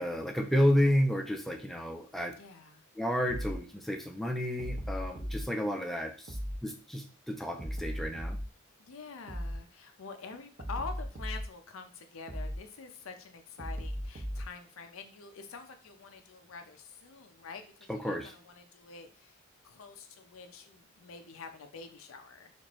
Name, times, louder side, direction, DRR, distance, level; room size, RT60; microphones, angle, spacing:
voice 1, 0.0-2.3 3.0-8.4 17.9-18.3, equal, ahead, 2 dB, 0.4 m, -31 dB
voice 2, 2.4-2.8 8.8-19.3 19.6-22.5, left 5 dB, 85° left, 7 dB, 0.6 m, -46 dB
sound 1, 3.3-3.6 4.6-5.4 6.3-6.6 7.6-8.5 9.3-9.6 10.6-11.5 12.3-12.6 13.6-14.5, equal, 45° right, 0.8 m, -36 dB
4.3 x 2.6 x 3.0 m, 0.37 s
head